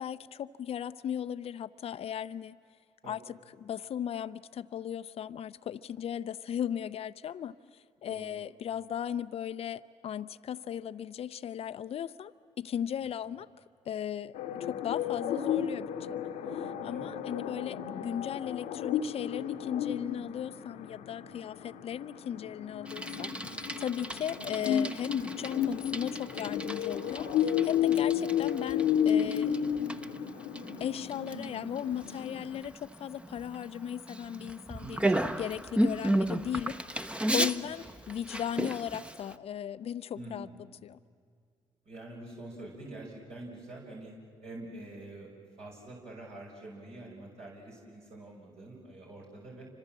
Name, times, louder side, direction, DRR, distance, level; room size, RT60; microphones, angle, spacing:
voice 1, 0.0-2.6 3.1-13.5 13.9-16.3 16.5-29.8 30.8-35.1 35.4-40.5 40.8-41.0, left 9 dB, 55° left, 13 dB, 0.6 m, -37 dB
voice 2, 8.0-8.4 16.9-17.1 21.2-21.3 31.3-31.5 34.8-35.1 37.6-37.7 40.1-40.6 41.9-44.1 44.4-45.3 45.6-49.7, right 1 dB, 65° right, -3 dB, 5.8 m, -46 dB
sound 1, 14.3-32.6, left 9 dB, 85° left, 1.1 m, -33 dB
Bicycle, 22.9-39.4, right 1 dB, 10° right, 1.0 m, -35 dB
29.0 x 25.5 x 7.5 m, 2.3 s
supercardioid pair, 60°, 12 cm